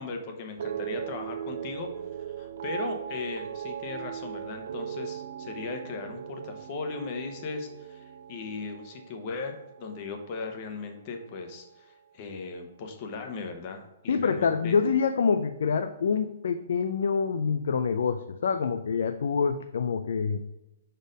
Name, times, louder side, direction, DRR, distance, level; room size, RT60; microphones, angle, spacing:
voice 1, 0.0-1.9 2.4-9.5 9.8-14.7, left 4 dB, 35° left, 4 dB, 0.9 m, -37 dB
sound 1, 0.6-11.0 11.2-11.8, right 9 dB, 60° right, 0.3 m, -39 dB
voice 2, 14.1-20.4, left 6 dB, 70° left, 8 dB, 0.4 m, -26 dB
5.1 x 4.4 x 5.1 m, 0.97 s
hypercardioid pair, 165°, 0 cm